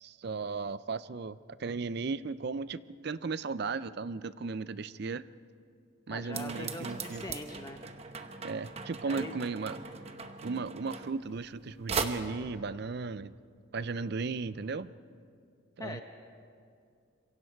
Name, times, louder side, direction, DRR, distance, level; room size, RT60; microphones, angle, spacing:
voice 1, 0.0-5.3 6.1-7.2 8.4-9.8 10.4-13.3 13.7-14.9 15.8-16.0, right 4 dB, 50° right, 16 dB, 0.5 m, -36 dB
voice 2, 6.1-7.8 9.0-9.3 15.8-16.0, left 1 dB, 15° left, 5 dB, 0.8 m, -42 dB
sound 1, 6.3-11.6 11.9-12.0, right 5 dB, 30° right, 0.9 m, -39 dB
26.0 x 23.5 x 4.6 m, 2.3 s
head